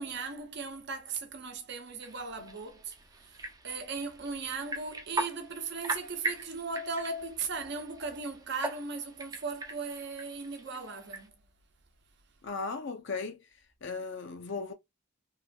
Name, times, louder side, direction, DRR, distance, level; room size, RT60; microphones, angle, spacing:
voice 1, 0.0-11.4, right 4 dB, 55° right, 0.7 m, -38 dB
sound 1, 2.0-11.3, right 2 dB, 15° right, 0.5 m, -40 dB
voice 2, 12.4-13.4 13.8-14.7, left 4 dB, 60° left, 0.5 m, -36 dB
3.0 x 2.5 x 2.3 m
head